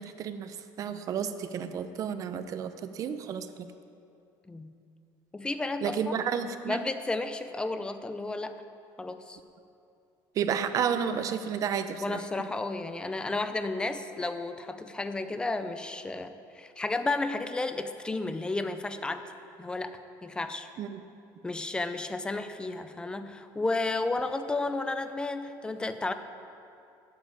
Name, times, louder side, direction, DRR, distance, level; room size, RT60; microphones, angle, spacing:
voice 1, 0.0-3.5 5.8-6.8 10.4-12.5 20.8-21.0, right 7 dB, 40° right, 10 dB, 0.6 m, -31 dB
voice 2, 5.3-6.3 6.7-8.6 9.0-9.4 12.0-19.2 19.6-20.7 21.4-26.1, left 2 dB, 10° left, 9 dB, 0.5 m, -32 dB
8.8 x 7.2 x 8.6 m, 2.6 s
cardioid pair, 155°, 9 cm